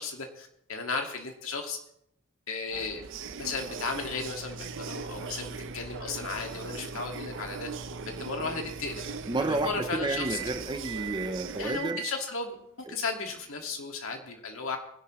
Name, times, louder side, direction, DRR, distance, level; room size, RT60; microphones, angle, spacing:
voice 1, 0.0-1.8 2.5-3.0 3.4-7.7 8.1-9.0 9.4-10.4 11.6-12.6 12.9-14.8, left 4 dB, 70° left, 3 dB, 2.1 m, -35 dB
sound 1, 2.7-11.8, right 5 dB, 65° right, 0.8 m, -40 dB
sound 2, 3.6-13.9, right 5 dB, 85° right, 1.9 m, -44 dB
voice 2, 9.3-12.0 12.9-13.0, right 2 dB, 20° right, 9 dB, 0.8 m, -31 dB
21.0 x 11.0 x 3.2 m, 0.74 s
head